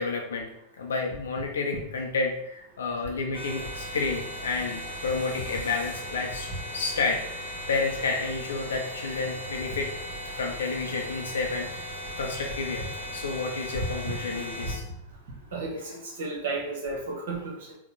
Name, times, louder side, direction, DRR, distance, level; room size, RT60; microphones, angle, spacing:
voice 1, 0.0-9.9 10.4-11.7 12.2-12.8 13.1-14.8 15.9-16.0, left 4 dB, 65° left, 1 dB, 0.5 m, -30 dB
sound 1, 3.3-14.8, equal, 35° right, 1.5 m, -37 dB
voice 2, 15.5-15.9 16.2-17.8, right 3 dB, 60° right, 0 dB, 1.0 m, -33 dB
4.0 x 2.1 x 4.1 m, 0.77 s
figure-of-eight pair, 90°, 0 cm